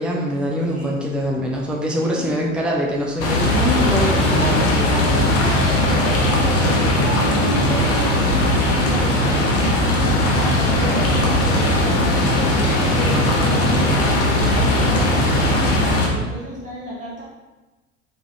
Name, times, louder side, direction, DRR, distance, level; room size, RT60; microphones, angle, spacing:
voice 1, 0.0-4.8 13.1-13.4 15.2-16.1, equal, ahead, -2 dB, 0.6 m, -24 dB
voice 2, 0.6-1.0 1.9-2.4 4.1-12.2 12.5-17.2, right 1 dB, 20° right, -7 dB, 1.5 m, -31 dB
sound 1, 3.2-16.1, left 1 dB, 35° left, 1.0 m, -18 dB
sound 2, 7.7-7.8 8.1-8.3 8.5-14.6, left 1 dB, 90° left, 0.8 m, -37 dB
3.9 x 3.5 x 3.1 m, 1.2 s
hypercardioid pair, 80°, 39 cm